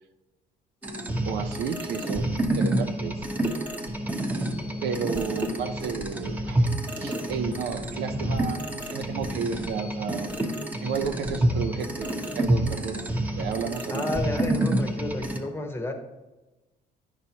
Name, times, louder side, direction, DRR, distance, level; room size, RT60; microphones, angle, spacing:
sound 1, 0.8-15.4, right 1 dB, 10° right, 1.0 m, -28 dB
voice 1, 1.3-3.2 4.6-6.7 7.0-10.3 10.8-13.1 13.3-14.0, right 6 dB, 80° right, 6 dB, 0.7 m, -32 dB
voice 2, 13.9-15.9, left 2 dB, 15° left, 5 dB, 1.0 m, -31 dB
9.9 x 5.9 x 2.9 m, 1.1 s
cardioid pair, 110°, 17 cm